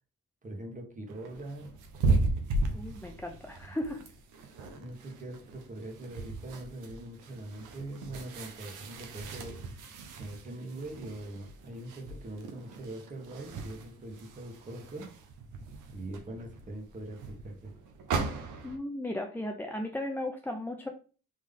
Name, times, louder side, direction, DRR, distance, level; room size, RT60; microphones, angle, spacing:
voice 1, 0.4-1.7 4.7-9.6 10.2-15.1 15.9-17.7, right 1 dB, 25° right, 2 dB, 1.3 m, -42 dB
sound 1, 1.1-18.8, right 3 dB, 85° right, 0.8 m, -36 dB
voice 2, 2.7-4.0 18.6-20.9, left 1 dB, 5° left, 2 dB, 0.4 m, -36 dB
3.7 x 3.1 x 3.7 m, 0.38 s
cardioid pair, 90°, 30 cm